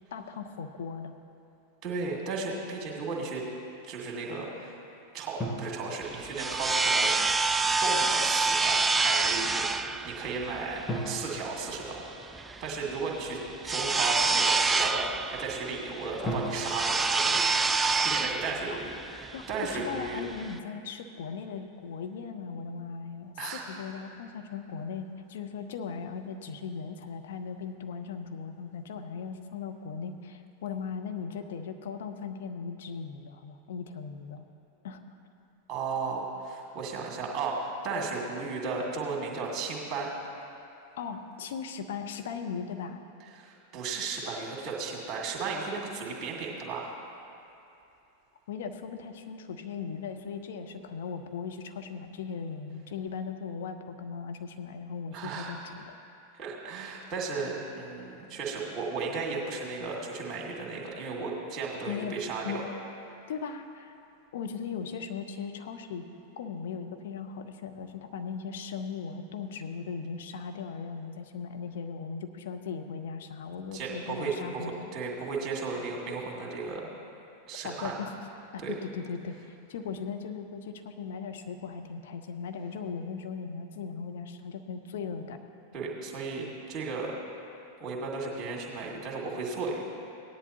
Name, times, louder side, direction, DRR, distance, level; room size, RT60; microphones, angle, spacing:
voice 1, 0.1-1.1 18.7-18.8 19.3-34.4 34.8-35.0 41.0-43.0 48.5-55.9 61.9-62.2 62.4-62.6 63.3-63.9 64.3-66.0 66.4-74.9 77.6-78.1 78.5-79.4 79.7-85.4, left 6 dB, 55° left, 6 dB, 0.8 m, -38 dB
voice 2, 1.8-3.5 3.8-4.8 5.1-7.1 7.8-12.0 12.6-17.6 18.0-20.2 23.4-23.6 35.7-40.1 43.3-46.9 55.1-55.6 56.4-62.6 73.7-76.9 77.5-77.9 78.6-78.7 85.7-87.1 87.8-89.8, right 4 dB, 30° right, -2 dB, 2.3 m, -35 dB
sound 1, 5.4-7.0 10.9-12.8 16.2-18.5, equal, 5° left, 1.3 m, -38 dB
sound 2, 6.0-20.6, right 3 dB, 10° right, 0.3 m, -27 dB
17.5 x 10.5 x 2.9 m, 2.7 s
figure-of-eight pair, 90°, 0 cm